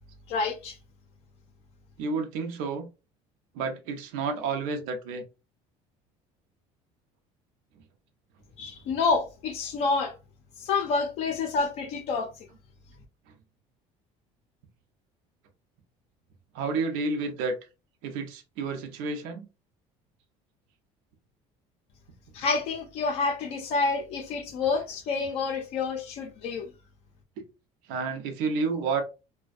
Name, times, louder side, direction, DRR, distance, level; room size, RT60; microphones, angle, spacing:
voice 1, 0.3-0.8 8.6-10.1 10.6-12.3 22.3-26.7, left 4 dB, 50° left, 0.5 m, -28 dB
voice 2, 2.0-2.8 3.5-5.2 8.9-9.0 16.5-17.6 18.0-19.5 27.4-27.5 27.9-29.0, right 4 dB, 85° right, 0.6 m, -30 dB
2.5 x 2.1 x 2.4 m
cardioid pair, 180°, 14 cm